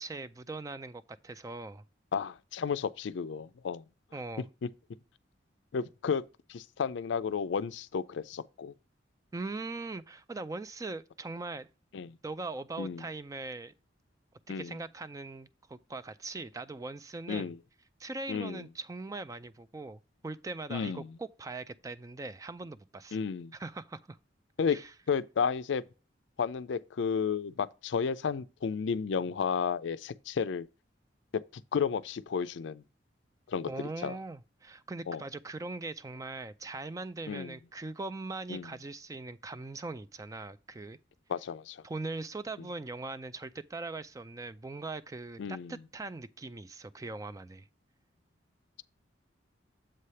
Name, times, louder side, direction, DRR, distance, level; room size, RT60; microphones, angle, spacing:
voice 1, 0.0-1.8 4.1-4.5 9.3-11.7 12.2-13.7 14.5-17.5 18.0-23.2 23.5-24.2 24.7-24.9 33.7-41.0 41.8-47.7, right 3 dB, 20° right, 0.3 m, -41 dB
voice 2, 2.1-3.8 5.7-6.2 6.5-8.7 11.9-12.2 12.8-13.1 14.5-14.8 17.3-17.6 18.3-18.6 20.7-21.1 23.1-23.5 24.6-24.8 25.1-25.8 26.4-30.7 31.3-32.8 33.5-34.2 35.1-35.2 37.3-37.5 38.5-38.7 41.3-41.8 45.4-45.8, left 6 dB, 75° left, 0.4 m, -32 dB
7.5 x 3.3 x 5.5 m
head